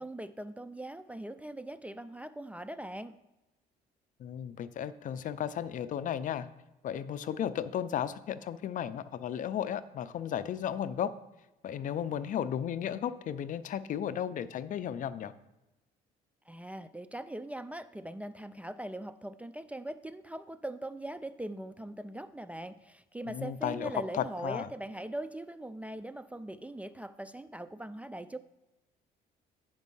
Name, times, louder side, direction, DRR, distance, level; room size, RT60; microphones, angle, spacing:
voice 1, 0.0-3.1 16.5-28.4, right 1 dB, 10° right, 12 dB, 0.3 m, -41 dB
voice 2, 4.2-6.5 6.8-11.1 11.6-15.3 23.3-24.7, left 9 dB, 50° left, 15 dB, 0.5 m, -34 dB
9.1 x 5.2 x 5.5 m, 1.0 s
cardioid pair, 110°, 17 cm